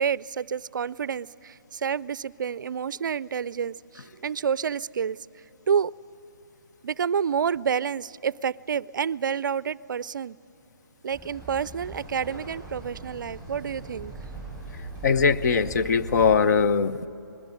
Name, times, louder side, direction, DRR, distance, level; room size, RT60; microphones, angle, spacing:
voice 1, 0.0-5.2 5.7-5.9 6.8-10.4 11.0-14.1, right 7 dB, 65° right, 0.4 m, -29 dB
sound 1, 11.1-16.4, right 2 dB, 10° left, 6.9 m, -40 dB
voice 2, 15.0-17.1, left 5 dB, 50° left, 0.7 m, -21 dB
21.0 x 15.5 x 10.0 m
hypercardioid pair, 150°, 11 cm